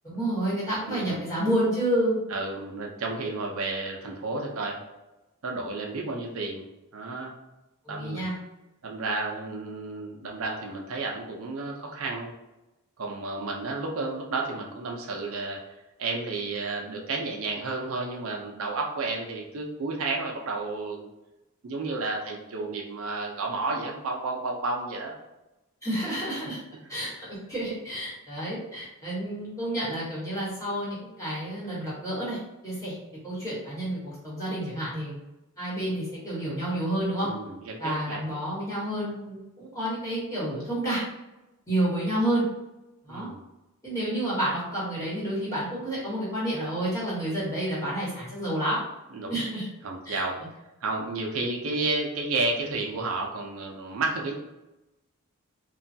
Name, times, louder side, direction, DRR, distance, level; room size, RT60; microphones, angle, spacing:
voice 1, 0.0-2.2 7.8-8.3 25.8-26.6 26.9-32.9 33.2-35.1 35.6-37.3 37.8-41.0 41.7-42.4 43.0-43.3 43.8-48.8 49.3-49.7 50.0-50.2, right 1 dB, 15° left, -8 dB, 1.1 m, -29 dB
voice 2, 0.9-1.2 2.3-4.8 5.4-6.6 6.9-7.3 7.9-8.2 8.8-12.3 13.0-15.6 16.0-21.1 21.6-25.2 37.3-38.3 43.1-43.4 49.1-49.4 49.8-50.4 50.8-54.3, right 3 dB, 70° right, 0 dB, 0.5 m, -31 dB
3.1 x 2.2 x 2.6 m, 0.99 s
head